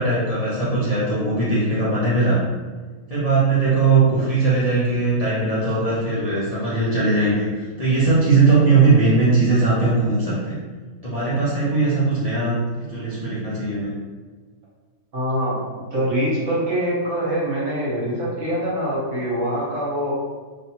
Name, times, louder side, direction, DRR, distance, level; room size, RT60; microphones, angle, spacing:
voice 1, 0.0-2.4 3.1-7.5 7.8-10.6 11.0-12.5 12.8-13.9, right 3 dB, 40° left, -10 dB, 0.5 m, -19 dB
voice 2, 15.1-20.1, equal, 60° right, -7 dB, 1.4 m, -24 dB
3.2 x 2.7 x 2.8 m, 1.4 s
omnidirectional pair, 1.5 m